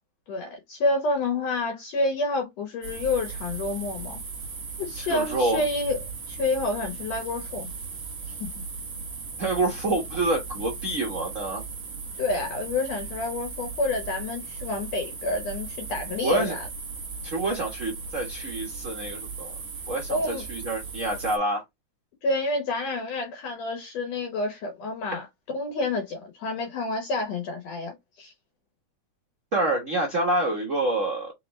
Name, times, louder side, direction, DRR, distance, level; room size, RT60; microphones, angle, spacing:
voice 1, 0.3-4.2 4.8-6.0 6.3-7.7 8.4-8.5 12.2-16.7 20.1-20.4 22.2-25.3 25.5-28.3, left 2 dB, 70° left, 2.0 m, -28 dB
sound 1, 2.8-21.4, right 4 dB, 40° right, 1.6 m, -37 dB
voice 2, 5.0-5.6 9.4-11.6 16.2-16.6 17.2-19.5 19.9-21.6 29.5-31.3, right 2 dB, 75° right, 0.7 m, -27 dB
4.3 x 3.8 x 3.0 m
omnidirectional pair, 3.4 m